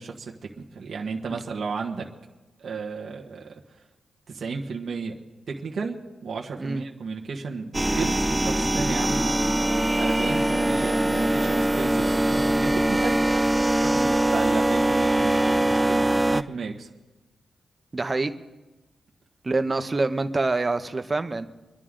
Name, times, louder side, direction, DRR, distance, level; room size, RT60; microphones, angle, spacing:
voice 1, 0.0-2.1 2.6-3.6 4.3-5.2 5.5-6.0 6.2-9.4 9.9-13.2 13.7-16.9, right 4 dB, 60° right, 0 dB, 1.5 m, -33 dB
sound 1, 7.7-16.4, right 1 dB, 10° right, 0.4 m, -22 dB
voice 2, 17.9-18.3 19.4-21.5, right 3 dB, 25° right, 9 dB, 0.8 m, -26 dB
24.0 x 11.0 x 3.8 m, 1.1 s
cardioid pair, 105°, 0 cm